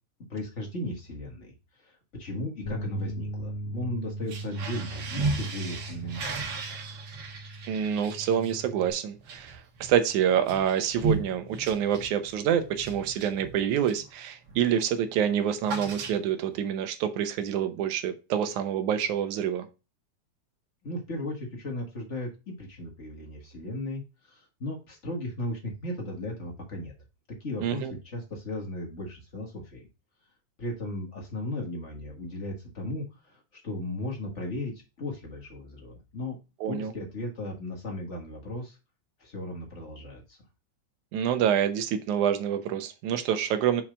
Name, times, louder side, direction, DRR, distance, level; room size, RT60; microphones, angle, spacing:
voice 1, 0.3-6.8 20.8-26.9 27.3-29.8 30.6-36.4 36.7-38.8 39.2-40.4, left 1 dB, 40° left, 0 dB, 1.0 m, -36 dB
sound 1, 2.7-8.9, right 1 dB, 75° left, 2.2 m, -38 dB
sound 2, 4.2-14.1 14.5-14.8 15.0-16.6, right 3 dB, 55° right, 2.1 m, -36 dB
voice 2, 7.7-19.7 27.6-27.9 36.6-36.9 41.1-43.8, right 9 dB, 80° right, 9 dB, 2.3 m, -27 dB
5.8 x 4.4 x 4.9 m, 0.29 s
omnidirectional pair, 3.5 m